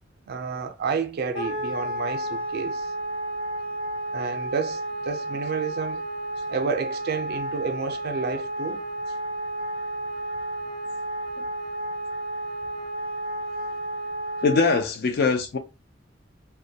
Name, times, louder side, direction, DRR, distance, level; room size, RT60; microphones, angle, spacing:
voice 1, 0.3-2.9 4.1-6.0 6.5-8.8, right 5 dB, 55° right, 0.4 m, -30 dB
Wind instrument woodwind instrument, 1.3-14.8, right 1 dB, 90° left, 1.0 m, -32 dB
voice 2, 14.4-15.6, left 4 dB, 55° left, 0.4 m, -22 dB
2.2 x 2.1 x 2.7 m
head